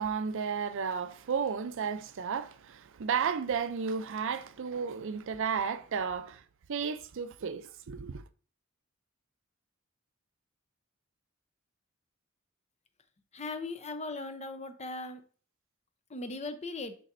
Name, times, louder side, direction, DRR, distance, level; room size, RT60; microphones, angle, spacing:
voice 1, 0.0-6.4 6.7-8.2, right 6 dB, 65° right, 0.5 m, -33 dB
voice 2, 13.3-15.2 16.1-17.0, left 3 dB, 30° left, 0.7 m, -38 dB
11.0 x 4.0 x 2.6 m
head